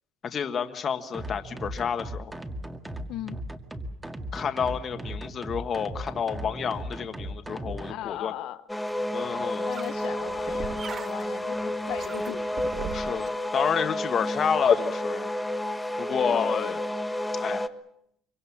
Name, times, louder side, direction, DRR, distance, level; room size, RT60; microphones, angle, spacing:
voice 1, 0.2-2.3 4.3-8.3 9.1-9.7 12.9-15.3 16.0-16.8 17.4-17.7, left 7 dB, 40° left, 1.6 m, -29 dB
sound 1, 1.1-7.9, right 1 dB, 10° right, 2.0 m, -37 dB
voice 2, 3.1-3.4 7.9-8.6 9.4-12.6 16.1-16.5, left 14 dB, 70° left, 1.0 m, -38 dB
sound 2, 8.7-17.7, left 1 dB, 5° left, 1.2 m, -31 dB
sound 3, 8.9-13.3, right 6 dB, 40° right, 1.3 m, -41 dB
24.5 x 24.0 x 7.3 m
cardioid pair, 125°, 0 cm